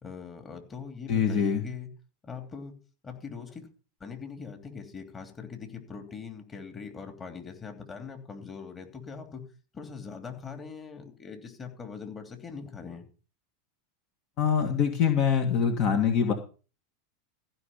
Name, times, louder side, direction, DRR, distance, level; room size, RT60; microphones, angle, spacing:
voice 1, 0.0-1.9 2.2-2.7 3.0-3.7 4.0-9.4 9.7-13.1, left 5 dB, 25° left, 4 dB, 3.1 m, -42 dB
voice 2, 1.1-1.6 14.4-16.3, left 7 dB, 50° left, 5 dB, 2.0 m, -24 dB
15.0 x 5.3 x 7.3 m, 0.36 s
hypercardioid pair, 90°, 0 cm